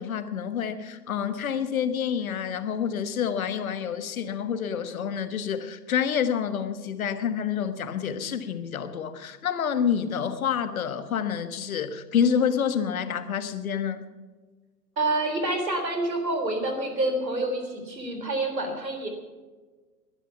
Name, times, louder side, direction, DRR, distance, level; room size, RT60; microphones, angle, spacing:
voice 1, 0.0-14.0, left 7 dB, 55° left, 11 dB, 1.4 m, -28 dB
voice 2, 15.0-19.1, right 2 dB, 80° right, 5 dB, 3.6 m, -27 dB
20.5 x 11.5 x 5.8 m, 1.4 s
figure-of-eight pair, 115°, 50 cm